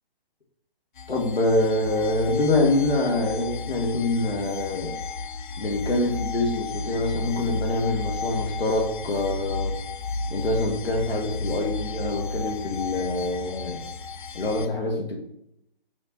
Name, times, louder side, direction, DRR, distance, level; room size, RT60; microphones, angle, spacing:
sound 1, 1.0-14.7, left 3 dB, 55° left, 0.6 m, -33 dB
voice 1, 1.1-4.9 5.6-9.7 10.3-13.8 14.3-15.2, left 2 dB, 85° left, 2 dB, 1.8 m, -25 dB
5.3 x 4.6 x 4.1 m, 0.78 s
hypercardioid pair, 155°, 29 cm